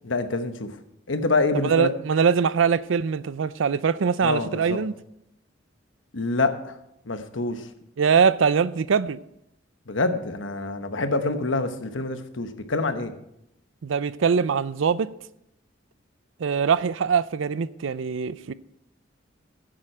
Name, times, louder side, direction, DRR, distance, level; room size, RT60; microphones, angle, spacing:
voice 1, 0.1-0.7 1.1-1.9 4.2-4.8 6.1-6.5 7.1-7.6 9.9-13.1, left 3 dB, 85° left, 1.1 m, -26 dB
voice 2, 1.5-4.9 8.0-9.2 13.8-15.1 16.4-18.5, right 6 dB, 90° right, 0.5 m, -22 dB
15.0 x 7.6 x 4.4 m
head